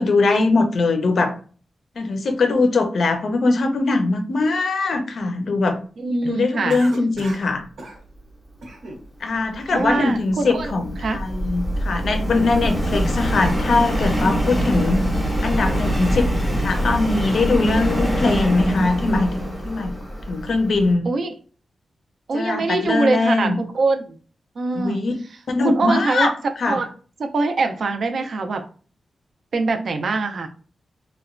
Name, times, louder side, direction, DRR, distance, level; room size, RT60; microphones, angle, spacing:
voice 1, 0.0-1.4 2.0-5.8 6.3-7.6 9.2-16.3 16.6-19.3 19.6-20.0 20.3-21.1 22.3-23.6 24.7-25.1 25.5-26.3 26.6-26.8, left 3 dB, 55° left, 6 dB, 0.4 m, -21 dB
voice 2, 6.0-6.8 9.7-10.7 11.0-11.2 21.1-21.3 22.3-24.2 24.6-25.0 25.6-26.3 26.7-26.9 27.2-28.6 29.5-30.5, right 3 dB, 55° right, 6 dB, 0.3 m, -23 dB
Cough, 6.7-7.5 7.8-8.0 8.6-9.0 9.5-10.2, right 1 dB, 85° right, 0.8 m, -34 dB
Subway metro underground, 9.6-20.9, equal, ahead, 0.6 m, -24 dB
2.9 x 2.1 x 2.4 m, 0.40 s
wide cardioid pair, 175°, 0 cm